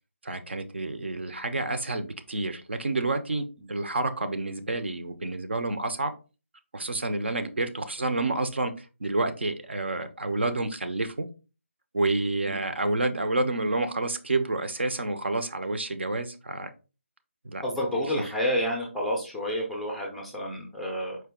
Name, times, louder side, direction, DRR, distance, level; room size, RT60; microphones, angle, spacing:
voice 1, 0.2-6.1 6.7-8.7 9.0-11.3 11.9-16.7 17.4-17.6, right 2 dB, 55° right, 8 dB, 0.7 m, -29 dB
voice 2, 17.6-21.2, equal, ahead, -1 dB, 0.5 m, -29 dB
4.6 x 2.7 x 3.7 m, 0.31 s
figure-of-eight pair, 155°, 7 cm